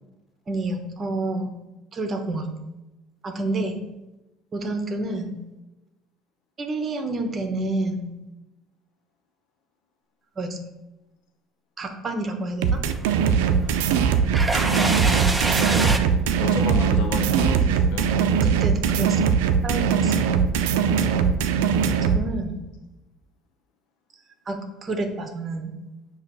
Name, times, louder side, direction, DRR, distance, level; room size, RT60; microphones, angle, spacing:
voice 1, 0.5-1.5 1.9-2.5 3.2-3.8 4.5-5.3 6.6-8.1 10.4-10.6 11.8-12.8 18.4-19.3 19.6-20.1 22.1-22.6 24.5-25.7, right 2 dB, 35° right, 5 dB, 1.2 m, -29 dB
sound 1, 12.6-22.2, right 7 dB, 90° right, 0.5 m, -21 dB
sound 2, 12.9-16.0, right 2 dB, 15° right, 0.8 m, -26 dB
voice 2, 14.6-15.3 16.4-18.2, left 4 dB, 75° left, 3 dB, 0.8 m, -32 dB
7.2 x 3.1 x 6.1 m, 1.0 s
supercardioid pair, 85°, 0 cm